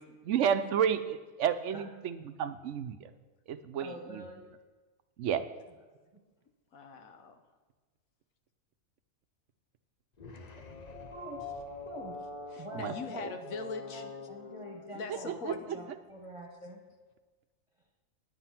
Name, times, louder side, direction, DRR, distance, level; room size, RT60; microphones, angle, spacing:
voice 1, 0.2-3.1 3.5-4.2 5.2-5.5 12.8-12.9 15.5-15.6, right 8 dB, 65° right, 11 dB, 0.9 m, -31 dB
voice 2, 3.8-4.4 5.7-5.8 11.1-11.5 11.8-12.2 12.6-13.3 13.8-16.8, right 1 dB, 25° right, 0 dB, 1.3 m, -46 dB
voice 3, 6.7-7.4 12.5-14.1 14.9-15.9, left 4 dB, 85° left, 8 dB, 1.4 m, -42 dB
sound 1, 10.2-15.7, left 4 dB, 40° left, 0.7 m, -45 dB
9.6 x 8.9 x 5.8 m, 1.3 s
omnidirectional pair, 1.4 m